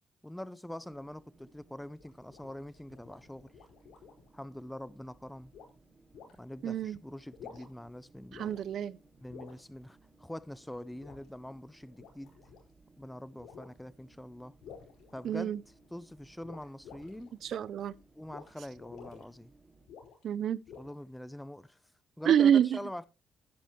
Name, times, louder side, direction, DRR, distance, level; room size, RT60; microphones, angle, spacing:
voice 1, 0.2-3.5 4.3-5.5 6.3-8.6 9.2-12.3 13.0-14.5 15.1-15.5 15.9-17.3 18.2-19.5 20.8-21.8 22.2-23.0, left 1 dB, 5° left, 0.6 m, -44 dB
sound 1, 0.8-19.9, right 3 dB, 35° right, 3.2 m, -63 dB
sound 2, 2.0-4.3 5.5-5.8 6.1-6.3 7.2-7.9 8.3-8.8 9.3-9.6 11.0-11.3 11.8-12.7 13.4-13.8 14.6-15.8 16.4-17.3 18.3-18.5 18.8-19.2 19.9-20.3 20.6-21.1, left 7 dB, 80° left, 4.8 m, -51 dB
voice 2, 6.6-7.0 8.3-9.0 15.2-15.6 17.4-17.9 20.2-20.6 22.3-22.8, right 9 dB, 65° right, 0.4 m, -27 dB
10.5 x 10.0 x 3.0 m
cardioid pair, 90°, 0 cm